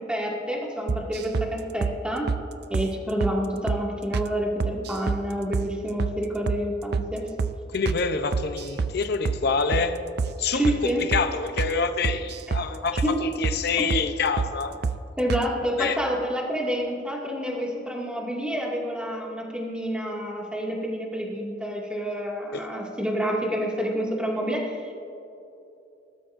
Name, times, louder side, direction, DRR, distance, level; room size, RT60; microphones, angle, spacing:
voice 1, 0.0-2.3 2.7-7.3 10.5-11.0 13.0-13.2 13.8-13.9 15.2-25.0, equal, 5° right, -3 dB, 2.1 m, -28 dB
sound 1, 0.9-1.5 1.8-2.0 2.3-2.4 2.7-2.9 3.2-3.4 3.7-3.8 4.1-4.3 4.6-5.2 5.5-5.7 6.0-6.2 6.5-6.6 6.9-7.1 7.4-7.6 7.9-8.0 8.3-9.0 9.3-9.4 9.7-9.9 10.2-10.4 10.6-10.8 11.1-11.3 11.6-11.7 12.0-12.7 13.0-13.1 13.4-13.6 13.9-14.1 14.4-14.5 14.8-15.0 15.3-15.5, right 5 dB, 60° right, 0.5 m, -27 dB
voice 2, 7.7-10.0 10.4-14.8 15.8-16.0 22.5-22.7, left 4 dB, 60° left, 7 dB, 0.7 m, -27 dB
20.0 x 12.5 x 2.6 m, 2.8 s
head